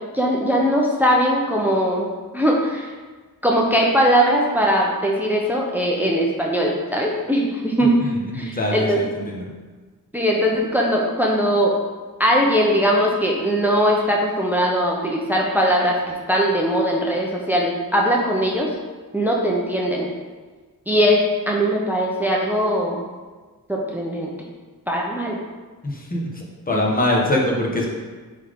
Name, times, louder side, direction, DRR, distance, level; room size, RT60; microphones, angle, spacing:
voice 1, 0.1-2.9 3.4-7.9 8.3-9.0 10.1-11.8 12.2-18.7 19.1-20.1 20.9-23.0 23.7-24.3 24.9-25.4 26.7-26.8, equal, 5° right, -2 dB, 0.8 m, -20 dB
voice 2, 8.0-9.4 25.8-27.8, left 1 dB, 25° left, -2 dB, 1.4 m, -23 dB
9.0 x 3.8 x 3.7 m, 1.4 s
wide cardioid pair, 100°, 36 cm